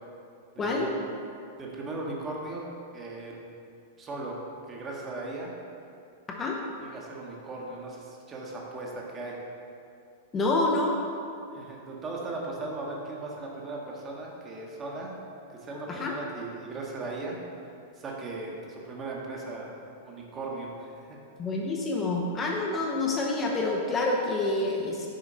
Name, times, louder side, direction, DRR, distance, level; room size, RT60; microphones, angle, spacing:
voice 1, 0.5-0.9 1.6-2.7 2.9-3.4 4.0-4.4 4.7-5.5 6.8-9.4 11.5-15.2 15.5-17.4 18.0-19.7 20.0-21.2, right 2 dB, 25° right, -2 dB, 1.2 m, -37 dB
voice 2, 10.3-11.0 15.9-16.1 21.4-25.1, left 2 dB, 20° left, -1 dB, 0.7 m, -27 dB
6.6 x 5.0 x 3.9 m, 2.5 s
figure-of-eight pair, 95°, 0 cm